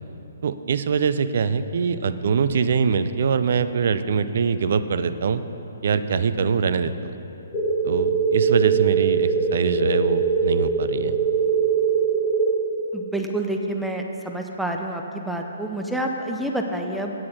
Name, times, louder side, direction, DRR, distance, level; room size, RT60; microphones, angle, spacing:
voice 1, 0.4-5.4 5.8-7.1 7.8-11.2, right 6 dB, 50° right, 12 dB, 0.4 m, -23 dB
sound 1, 7.5-12.5, right 5 dB, 25° left, 1.6 m, -21 dB
voice 2, 12.9-17.1, right 1 dB, ahead, 2 dB, 0.6 m, -28 dB
9.0 x 8.5 x 6.0 m, 3.0 s
figure-of-eight pair, 130°, 0 cm